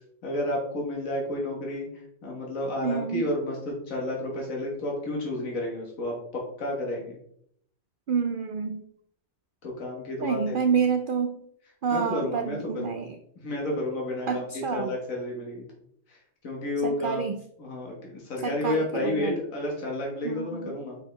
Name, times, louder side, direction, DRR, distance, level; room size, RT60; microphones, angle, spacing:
voice 1, 0.2-1.9 2.2-7.2 9.6-10.6 11.9-13.1 13.4-15.6 16.1-16.2 16.4-17.2 17.6-21.0, left 1 dB, 90° left, -2 dB, 1.8 m, -31 dB
voice 2, 2.8-3.2 8.1-8.8 10.2-11.4 11.8-13.2 14.3-14.9 16.8-17.4 18.4-19.3 20.2-20.8, right 6 dB, 65° right, 7 dB, 0.5 m, -28 dB
6.4 x 4.6 x 3.3 m, 0.68 s
omnidirectional pair, 1.4 m